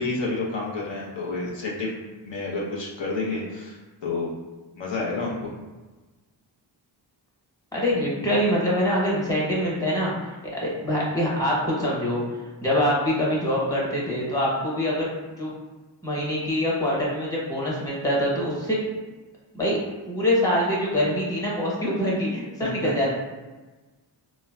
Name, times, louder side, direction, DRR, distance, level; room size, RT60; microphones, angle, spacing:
voice 1, 0.0-1.9 2.2-4.3 4.8-5.5 22.6-22.9, left 3 dB, 70° left, -4 dB, 0.7 m, -29 dB
voice 2, 7.7-10.3 10.5-12.2 12.6-15.1 15.4-15.5 16.0-18.8 19.5-19.8 20.1-23.1, equal, 10° left, -5 dB, 1.0 m, -24 dB
3.1 x 2.1 x 2.3 m, 1.2 s
cardioid pair, 45°, 46 cm